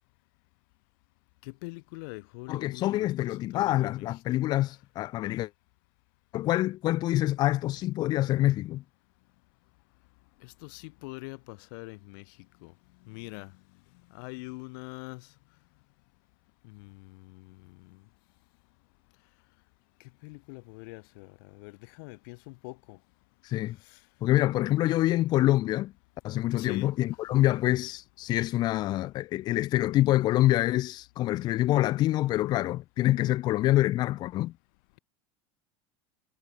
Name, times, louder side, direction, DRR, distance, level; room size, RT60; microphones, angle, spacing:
voice 1, 1.6-3.1 3.5-4.1 10.6-12.2 12.6-12.7 13.1-13.5 14.2-15.2 16.7-16.9 20.2-21.3 21.5-21.7 22.0-23.0 26.6-26.9, left 30 dB, 70° left, 1.1 m, -42 dB
voice 2, 2.5-5.5 6.3-8.8 23.4-23.8 24.2-25.9 26.2-34.5, left 15 dB, 35° left, 0.8 m, -26 dB
cardioid pair, 170°, 12 cm